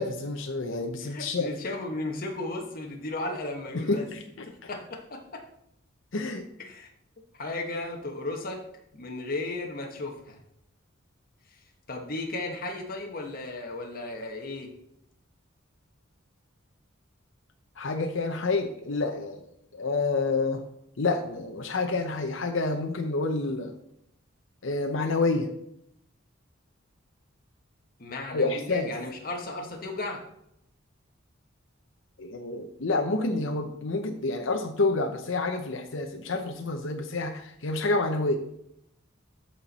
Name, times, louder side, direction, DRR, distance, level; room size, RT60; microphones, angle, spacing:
voice 1, 0.0-1.5 3.7-4.7 6.1-6.5 17.8-19.4 19.7-20.6 21.0-23.7 24.6-25.5 28.3-28.9 32.2-38.4, left 3 dB, 65° left, 4 dB, 0.8 m, -28 dB
voice 2, 1.0-4.1 4.7-5.4 6.6-6.9 7.4-8.6 9.0-10.4 11.9-14.7 28.0-30.2, left 2 dB, 45° left, 1 dB, 1.3 m, -35 dB
13.5 x 4.5 x 4.2 m, 0.76 s
head